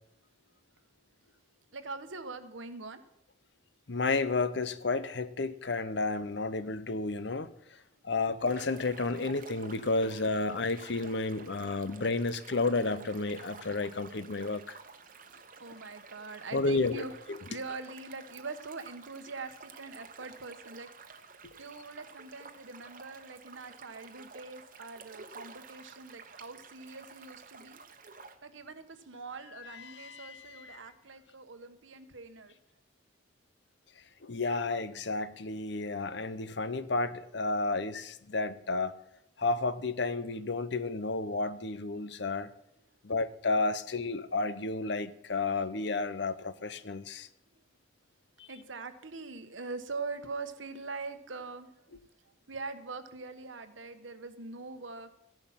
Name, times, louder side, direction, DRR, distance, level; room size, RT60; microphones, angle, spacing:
voice 1, 1.7-3.0 15.2-17.2 17.5-27.8 28.4-32.5 48.5-51.9 52.5-55.1, right 3 dB, 85° right, 1.2 m, -43 dB
voice 2, 3.9-7.5 8.0-14.8 16.5-17.0 29.9-30.4 34.2-38.9 39.4-42.5 43.0-47.3, left 3 dB, 65° left, 0.8 m, -31 dB
sound 1, 8.5-28.4, right 4 dB, 45° right, 1.1 m, -51 dB
14.5 x 11.0 x 5.8 m
head